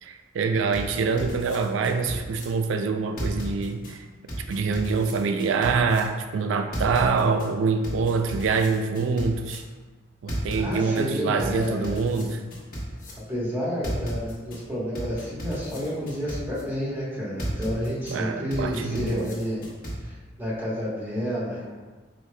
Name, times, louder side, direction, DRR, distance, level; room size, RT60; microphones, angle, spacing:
voice 1, 0.0-4.0 4.5-9.6 10.2-12.4 18.1-19.3, right 4 dB, 80° right, 6 dB, 0.3 m, -25 dB
sound 1, 0.7-2.4 3.2-3.9 4.3-6.0 6.7-7.5 7.8-9.6 10.3-11.0 11.4-13.1 13.8-14.6 15.0-16.6 17.4-18.1 18.5-20.0, equal, 45° left, 1.2 m, -34 dB
voice 2, 10.5-11.9 13.3-19.6 20.0-21.7, equal, 10° right, -8 dB, 1.2 m, -30 dB
5.0 x 4.3 x 2.2 m, 1.3 s
head